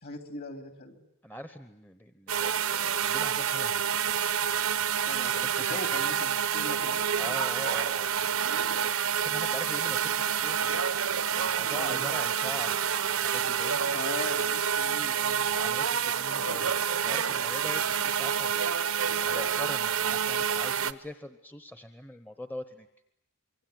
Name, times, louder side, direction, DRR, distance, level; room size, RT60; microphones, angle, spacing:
voice 1, 0.0-1.1 5.0-7.0 11.8-12.1 13.9-15.4, left 2 dB, 50° left, 7 dB, 3.1 m, -40 dB
voice 2, 1.2-4.4 5.3-6.0 7.2-8.1 9.2-10.8 11.3-12.9 13.2-13.8 15.5-18.7 19.2-22.9, left 1 dB, 10° left, 9 dB, 1.0 m, -42 dB
sound 1, 2.3-20.9, right 8 dB, 80° right, 1.0 m, -28 dB
25.5 x 24.0 x 9.4 m, 0.80 s
head